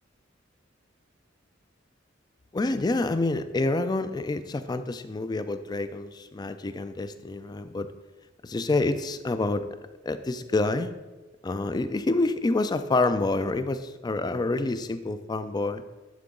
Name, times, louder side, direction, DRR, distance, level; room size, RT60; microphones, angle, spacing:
voice 1, 2.5-7.9 8.4-9.7 10.0-10.9 11.4-15.8, left 2 dB, 20° left, 11 dB, 0.3 m, -27 dB
11.0 x 3.8 x 3.7 m, 1.1 s
head